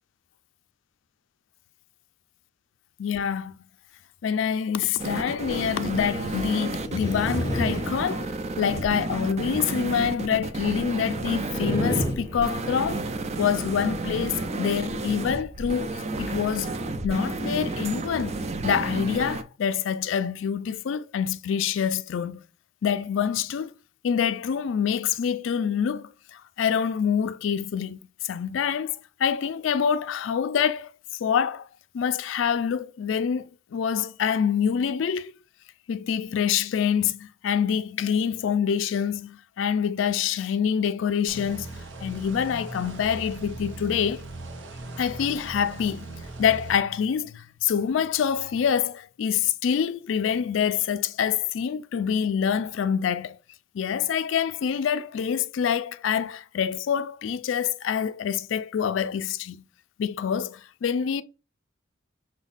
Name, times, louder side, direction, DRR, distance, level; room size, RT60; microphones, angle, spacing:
voice 1, 3.0-3.5 4.2-13.1 13.4-16.8 17.0-18.4 18.6-22.4 22.8-23.7 24.0-31.7 31.9-35.3 35.9-44.3 45.0-46.1 46.4-53.4 53.7-59.6 60.0-61.2, left 7 dB, 85° left, 0.4 m, -26 dB
sound 1, 5.0-19.4, right 2 dB, 35° right, 0.5 m, -31 dB
sound 2, 6.8-8.7 11.5-13.1, left 1 dB, 15° left, 0.5 m, -30 dB
sound 3, 41.3-46.8, right 2 dB, 90° right, 0.7 m, -39 dB
5.9 x 2.2 x 4.0 m
head